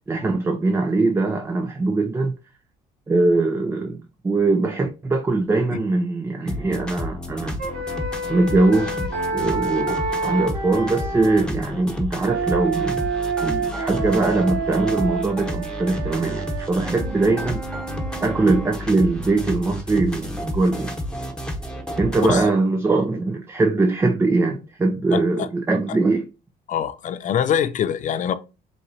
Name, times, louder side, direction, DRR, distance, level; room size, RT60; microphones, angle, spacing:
voice 1, 0.1-2.3 3.1-4.0 4.2-7.6 8.3-13.1 13.4-17.6 18.2-20.9 22.0-26.3, right 3 dB, 15° right, 0.4 m, -21 dB
sound 1, 6.5-22.5, left 1 dB, 5° left, 0.9 m, -31 dB
sound 2, 7.6-11.4 12.2-18.7, right 4 dB, 70° right, 1.5 m, -28 dB
voice 2, 25.1-25.5 25.9-26.0 26.7-28.3, left 9 dB, 50° left, 0.5 m, -24 dB
5.1 x 3.0 x 2.7 m
cardioid pair, 110°, 17 cm